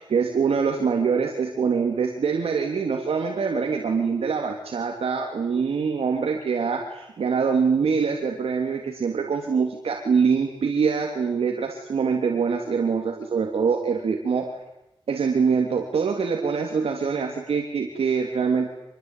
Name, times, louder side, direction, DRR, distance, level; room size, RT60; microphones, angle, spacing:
voice 1, 0.0-14.5 15.1-18.7, right 5 dB, 85° right, 2 dB, 3.2 m, -24 dB
26.5 x 22.5 x 9.3 m, 0.85 s
wide cardioid pair, 80°, 10 cm